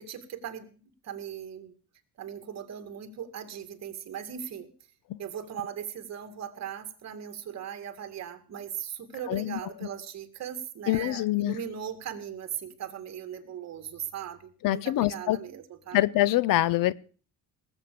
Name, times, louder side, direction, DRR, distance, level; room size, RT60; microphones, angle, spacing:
voice 1, 0.0-1.7 2.2-4.7 5.2-16.0, right 9 dB, 50° right, 2.2 m, -39 dB
voice 2, 9.3-9.6 10.9-11.6 14.6-15.4 15.9-16.9, left 15 dB, 70° left, 0.7 m, -24 dB
19.0 x 8.1 x 6.8 m
cardioid pair, 150°, 34 cm